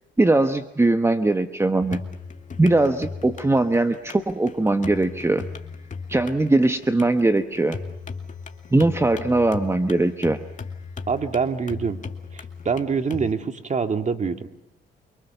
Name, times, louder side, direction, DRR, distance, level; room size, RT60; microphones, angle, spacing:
voice 1, 0.2-2.0 2.6-5.4 6.1-7.8 8.7-10.4, right 2 dB, 15° right, 8 dB, 1.1 m, -20 dB
sound 1, 1.8-13.3, left 4 dB, 40° left, 2.2 m, -37 dB
voice 2, 11.1-12.0 12.3-14.5, right 5 dB, 35° right, 7 dB, 2.0 m, -25 dB
29.0 x 24.5 x 6.9 m, 0.90 s
cardioid pair, 90°, 20 cm